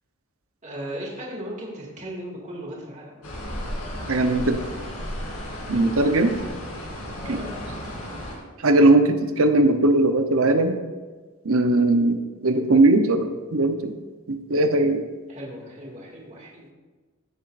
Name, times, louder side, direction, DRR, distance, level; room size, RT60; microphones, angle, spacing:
voice 1, 0.6-3.2 4.1-4.4 5.7-8.0 15.3-16.7, equal, 35° right, -3 dB, 2.2 m, -38 dB
sound 1, 3.2-8.3, left 1 dB, 90° left, 2.8 m, -34 dB
voice 2, 4.1-4.6 5.7-6.4 7.3-7.4 8.6-10.8 11.4-13.9 14.3-15.1, right 2 dB, 70° right, 7 dB, 0.9 m, -19 dB
16.0 x 7.3 x 2.6 m, 1.3 s
head